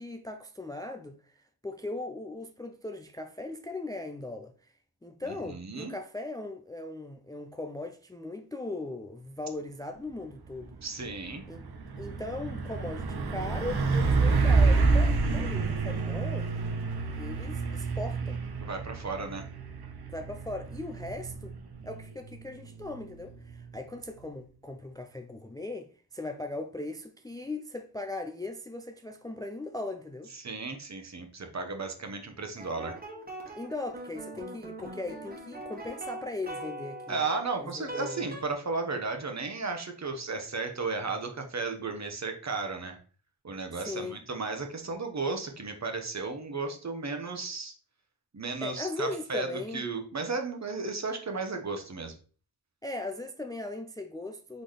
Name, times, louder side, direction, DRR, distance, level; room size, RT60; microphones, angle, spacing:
voice 1, 0.0-4.5 5.0-10.8 11.5-11.7 12.0-16.5 17.1-18.4 20.1-21.5 21.8-30.3 33.6-37.3 37.6-38.2 43.7-44.2 48.6-49.9 52.8-54.6, left 2 dB, 10° left, 0.3 m, -38 dB
voice 2, 5.3-5.9 10.8-11.4 18.6-19.4 30.3-33.0 37.1-43.0 43.4-47.7 48.3-52.1, right 4 dB, 45° right, 1.0 m, -34 dB
Truck, 10.5-10.7 11.1-23.6, right 4 dB, 80° right, 0.7 m, -29 dB
sound 1, 32.6-38.4, right 1 dB, 25° right, 1.3 m, -42 dB
3.9 x 3.9 x 3.2 m
wide cardioid pair, 90°, 38 cm